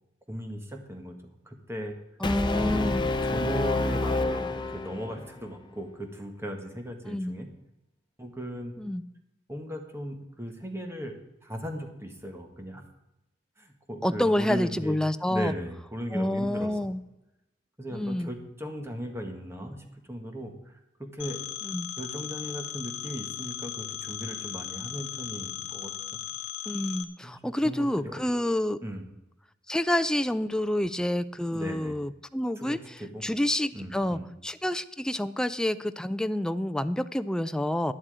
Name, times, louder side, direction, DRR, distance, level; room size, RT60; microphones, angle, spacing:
voice 1, 0.3-1.2 1.4-1.9 3.2-7.5 8.2-8.7 9.5-12.8 13.6-15.0 15.3-16.9 17.8-21.4 22.0-26.2 27.2-28.2 28.8-29.0 31.5-32.0 32.6-33.2 33.7-34.2, equal, 15° right, 4 dB, 1.6 m, -37 dB
Brass instrument, 2.2-5.3, left 2 dB, 25° left, 0.8 m, -28 dB
voice 2, 2.2-3.1 7.1-7.4 8.8-9.0 14.0-15.5 16.1-17.0 17.9-18.3 21.6-21.9 26.7-28.8 29.7-37.9, left 1 dB, 5° left, 11 dB, 0.4 m, -28 dB
Telephone, 21.2-27.0, left 12 dB, 75° left, 0.9 m, -37 dB
11.0 x 10.0 x 4.9 m, 0.91 s
head